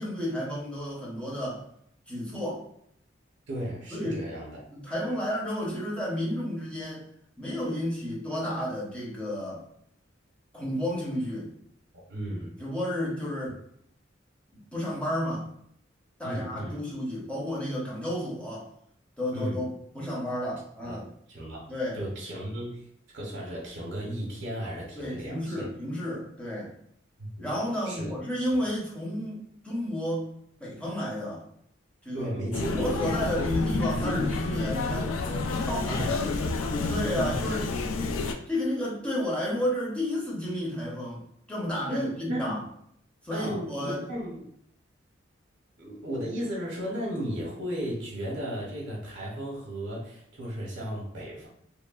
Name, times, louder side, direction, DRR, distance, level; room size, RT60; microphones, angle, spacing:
voice 1, 0.0-1.6 2.1-2.6 3.9-4.2 4.7-7.0 7.4-9.6 10.5-11.5 12.6-13.6 14.7-15.5 16.2-18.7 19.2-21.0 21.7-22.0 24.9-26.7 27.4-30.3 30.6-31.5 32.0-32.3 32.7-35.2 35.5-36.2 36.9-37.6 38.5-41.2 41.5-42.6 43.2-44.0, equal, 5° left, -5 dB, 0.7 m, -31 dB
voice 2, 3.5-4.7 12.1-12.6 16.2-16.8 19.3-19.6 20.8-21.0 21.3-21.7 21.9-22.9 23.1-25.7 27.2-27.5 27.8-28.1 28.5-28.6 32.1-33.4 34.1-34.2 35.9-36.2 37.2-37.4 41.9-42.6 43.3-44.4 45.8-51.5, equal, 60° right, -3 dB, 0.6 m, -35 dB
sound 1, 32.5-38.3, left 3 dB, 90° left, 0.3 m, -29 dB
2.9 x 2.1 x 2.3 m, 0.69 s
head